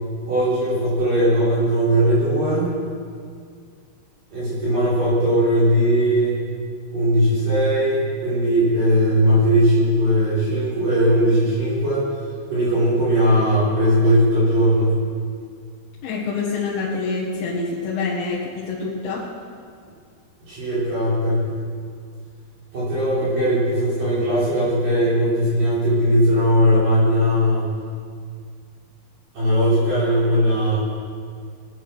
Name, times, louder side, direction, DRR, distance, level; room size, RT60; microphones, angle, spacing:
voice 1, 0.3-2.7 4.3-6.4 6.9-12.0 12.5-15.0 20.5-21.5 22.7-27.7 29.3-30.8, equal, 50° right, -10 dB, 5.6 m, -19 dB
voice 2, 16.0-19.3, left 4 dB, 80° left, -6 dB, 4.1 m, -26 dB
22.0 x 8.9 x 6.2 m, 2.1 s
omnidirectional pair, 5.3 m